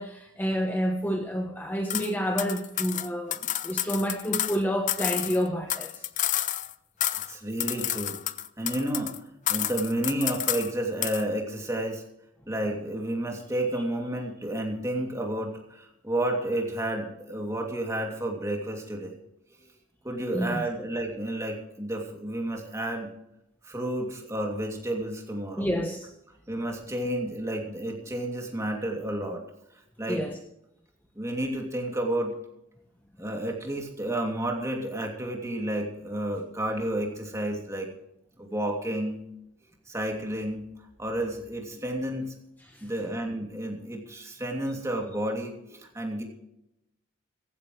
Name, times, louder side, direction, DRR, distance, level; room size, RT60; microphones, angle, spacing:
voice 1, 0.0-6.1 20.3-20.7 25.6-26.1 30.1-30.4 42.7-42.9, equal, 10° left, 1.0 m, -29 dB
sound 1, 1.9-2.1 2.4-4.6 4.9-6.7 7.0-7.3 7.6-9.2 9.5-10.7 11.0-11.2, left 12 dB, 40° left, 0.5 m, -30 dB
voice 2, 7.1-8.2 8.6-9.1 9.5-12.0 12.5-19.2 20.0-23.1 23.6-25.7 26.5-29.4 30.0-30.2 31.1-32.3 33.2-37.9 38.4-39.2 39.9-40.7 41.0-42.3 42.8-46.2, right 1 dB, 15° right, 2.8 m, -31 dB
16.5 x 15.0 x 3.2 m
head